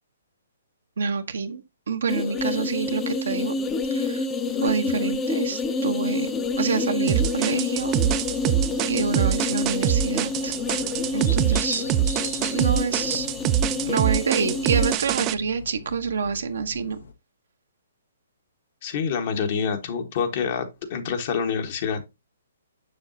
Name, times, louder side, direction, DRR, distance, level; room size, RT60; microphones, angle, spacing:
voice 1, 1.0-1.6 1.9-3.5 3.9-4.3 4.6-6.3 6.6-8.0 8.9-10.5 11.1-11.8 12.1-12.3 12.5-13.3 13.9-17.0, right 5 dB, 70° right, 0.9 m, -27 dB
sound 1, 2.1-14.9, left 3 dB, 15° left, 0.7 m, -28 dB
sound 2, 7.1-15.3, right 11 dB, 30° right, 0.4 m, -24 dB
sound 3, 7.8-17.1, left 5 dB, 75° left, 1.1 m, -41 dB
voice 2, 18.8-22.0, left 6 dB, 50° left, 1.3 m, -27 dB
6.9 x 6.4 x 2.7 m
hypercardioid pair, 130°, 0 cm